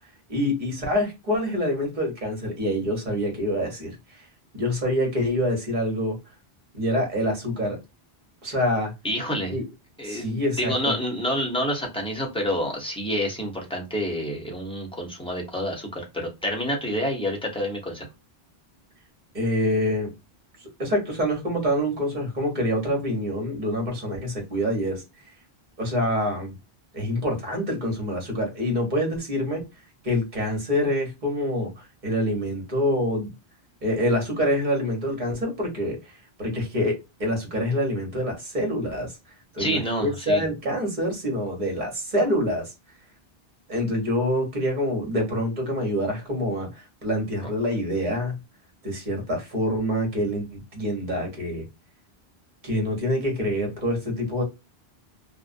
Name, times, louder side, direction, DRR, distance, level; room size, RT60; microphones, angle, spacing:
voice 1, 0.3-4.0 4.5-6.2 6.7-7.8 8.4-8.9 9.5-9.6 10.0-10.9 19.3-20.1 20.6-25.0 25.8-26.5 26.9-29.6 30.0-33.3 33.8-36.0 36.4-39.1 39.5-42.7 43.7-48.4 48.8-51.7 52.6-54.4, equal, 45° right, 1.1 m, -26 dB
voice 2, 9.0-9.5 10.0-18.1 39.6-40.4, equal, 5° left, 0.7 m, -28 dB
2.4 x 2.1 x 2.4 m
omnidirectional pair, 1.1 m